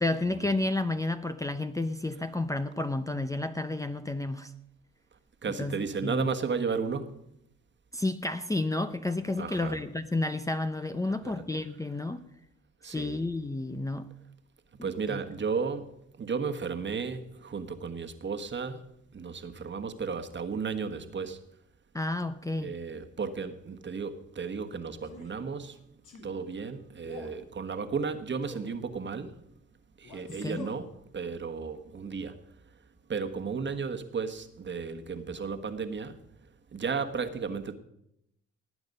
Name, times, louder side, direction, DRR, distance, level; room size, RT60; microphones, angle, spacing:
voice 1, 0.0-4.5 5.6-6.3 7.9-12.2 12.8-14.1 15.1-15.2 21.9-22.8 30.4-30.7, left 2 dB, 10° left, 9 dB, 0.6 m, -31 dB
voice 2, 5.4-7.2 9.4-9.8 11.2-11.4 12.8-13.2 14.8-21.4 22.6-25.8 26.2-29.4 30.0-32.4 33.1-36.2 36.7-37.7, right 5 dB, 40° right, 8 dB, 1.4 m, -34 dB
Male speech man speaking, 25.0-25.4 26.0-26.3 27.0-27.4 28.4-28.8 30.0-30.9, left 3 dB, 80° left, 3.1 m, -46 dB
18.5 x 8.7 x 5.4 m, 0.78 s
cardioid pair, 90°, 30 cm